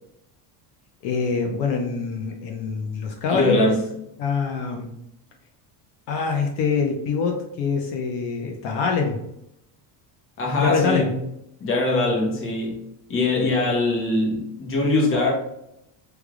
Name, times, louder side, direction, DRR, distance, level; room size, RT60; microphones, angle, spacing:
voice 1, 1.0-3.8 4.2-4.9 6.1-9.2 10.6-11.1, left 5 dB, 60° left, 2 dB, 0.7 m, -24 dB
voice 2, 3.3-3.8 10.4-11.1 11.6-12.8 13.1-15.3, left 2 dB, 25° left, -1 dB, 0.8 m, -22 dB
3.3 x 2.3 x 3.6 m, 0.80 s
cardioid pair, 160°, 48 cm